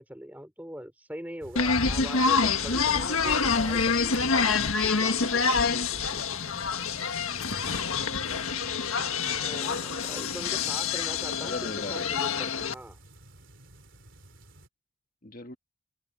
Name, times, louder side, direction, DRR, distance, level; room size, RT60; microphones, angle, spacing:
voice 1, 0.0-6.2 9.4-13.0, equal, 10° right, 3.3 m, -42 dB
sound 1, 1.4-14.7, right 1 dB, 60° right, 3.5 m, -50 dB
sound 2, 1.6-12.7, left 5 dB, 80° left, 1.6 m, -27 dB
voice 2, 11.4-12.4 15.2-15.6, left 2 dB, 40° left, 1.6 m, -41 dB
open air
head